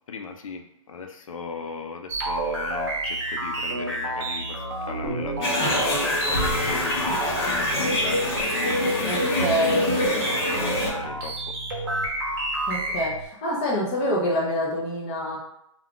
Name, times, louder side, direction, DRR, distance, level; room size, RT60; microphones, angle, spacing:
voice 1, 0.1-9.5 10.0-11.6, left 5 dB, 85° left, 4 dB, 0.5 m, -37 dB
sound 1, 2.1-13.2, right 1 dB, 50° right, 1.0 m, -29 dB
sound 2, 5.4-10.9, left 1 dB, 45° left, 0.8 m, -25 dB
voice 2, 9.0-9.8 12.7-15.4, equal, 20° left, -2 dB, 0.5 m, -26 dB
2.3 x 2.3 x 3.6 m, 0.79 s
hypercardioid pair, 165°, 17 cm